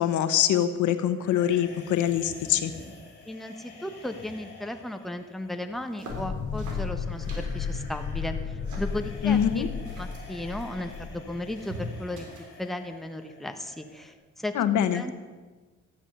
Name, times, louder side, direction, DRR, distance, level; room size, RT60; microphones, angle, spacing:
voice 1, 0.0-2.7 9.2-9.7 14.5-15.0, left 10 dB, 75° left, 10 dB, 1.1 m, -24 dB
sound 1, 1.1-14.1, left 3 dB, 35° left, 4.0 m, -49 dB
voice 2, 3.3-9.7 10.0-12.2 12.6-14.5 14.9-15.1, left 1 dB, ahead, 6 dB, 1.1 m, -35 dB
sound 2, 5.7-12.7, right 1 dB, 75° right, 3.9 m, -45 dB
sound 3, 6.1-11.5, left 5 dB, 55° left, 1.8 m, -33 dB
14.0 x 11.0 x 6.8 m, 1.3 s
cardioid pair, 90°, 30 cm